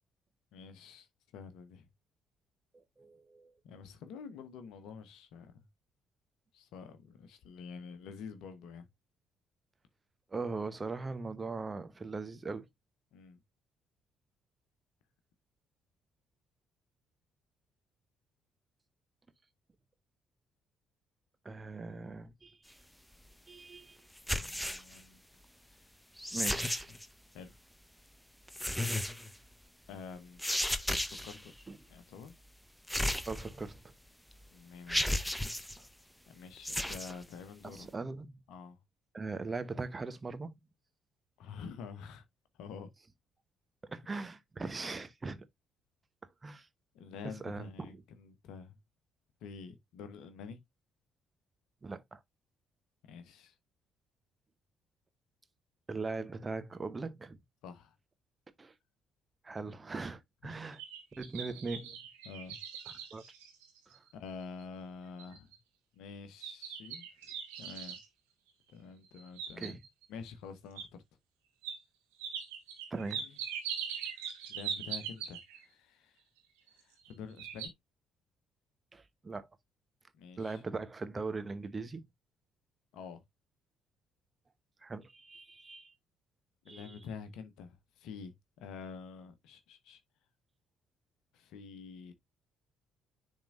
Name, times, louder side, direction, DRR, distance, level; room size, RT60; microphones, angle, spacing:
voice 1, 0.5-1.1 1.3-1.9 3.6-5.6 6.5-8.9 13.1-13.4 24.3-25.2 25.7-25.8 27.3-27.5 29.2-29.4 29.9-30.4 31.2-31.5 31.9-32.3 34.5-35.5 36.3-37.9 38.5-38.8 41.4-42.2 42.6-42.9 46.9-48.8 49.4-50.6 53.1-53.5 57.6-57.9 60.4-60.6 62.2-62.6 64.1-65.5 65.9-67.1 67.6-68.0 68.7-69.8 70.1-71.0 73.2-73.4 74.5-76.2 76.7-77.7 80.1-80.6 82.9-83.2 86.6-90.0 91.3-92.1, left 5 dB, 65° left, 1.0 m, -48 dB
voice 2, 2.7-3.5 10.3-12.7 21.4-22.6 23.5-24.0 26.3-27.0 31.7-31.8 33.3-33.8 35.8-35.9 37.6-38.3 39.1-40.5 43.8-45.4 46.4-46.7 47.4-47.9 51.8-52.2 55.9-57.4 58.6-58.7 59.4-60.8 61.2-62.0 62.9-63.2 63.9-64.0 69.6-69.8 72.9-73.4 78.9-79.5 80.4-82.0 84.8-85.9 86.7-87.0, right 3 dB, 30° right, 0.9 m, -40 dB
sound 1, 24.2-25.0 26.2-27.0 28.5-29.3 30.4-31.4 32.9-33.8 34.3-34.4 34.9-35.8 36.6-37.1, left 1 dB, 5° left, 0.7 m, -34 dB
sound 2, 60.5-64.1 64.6-64.7 65.2-65.6 66.4-68.1 69.0-70.0 70.8-70.9 71.6-71.8 72.2-75.6 76.7-77.1 77.4-77.7, right 7 dB, 75° right, 1.5 m, -41 dB
10.0 x 3.7 x 2.5 m
figure-of-eight pair, 45°, 0 cm